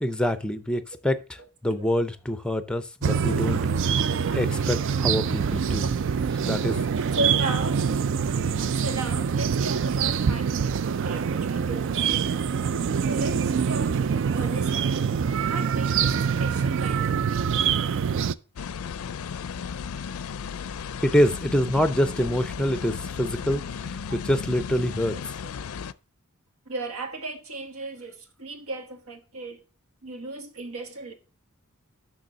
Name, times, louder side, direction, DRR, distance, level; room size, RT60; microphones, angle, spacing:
voice 1, 0.0-3.6 4.3-6.0 6.4-6.8 21.0-25.3, equal, 5° left, 0.5 m, -26 dB
sound 1, 3.0-18.3, right 6 dB, 60° right, 0.4 m, -25 dB
voice 2, 5.8-6.1 7.1-7.8 8.7-12.4 13.0-14.0 14.3-15.0 15.4-17.5 25.1-25.2 26.7-29.6 30.0-31.1, right 2 dB, 80° right, 1.4 m, -35 dB
sound 2, 18.6-25.9, left 6 dB, 75° left, 0.4 m, -35 dB
6.7 x 6.2 x 6.1 m
head